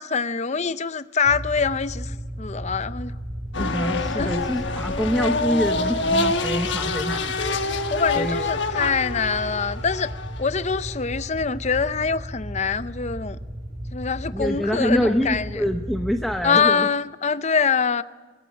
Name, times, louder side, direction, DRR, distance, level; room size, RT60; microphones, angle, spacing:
voice 1, 0.0-3.1 4.2-4.5 7.9-10.1 10.4-13.4 13.9-15.6 16.4-18.0, left 5 dB, 35° left, 0.6 m, -24 dB
sound 1, 1.2-16.4, equal, 35° right, 2.1 m, -35 dB
sound 2, 3.5-11.4, left 3 dB, 60° left, 1.4 m, -27 dB
voice 2, 3.6-8.5 14.3-16.9, equal, ahead, 0.8 m, -26 dB
20.0 x 14.5 x 9.8 m
head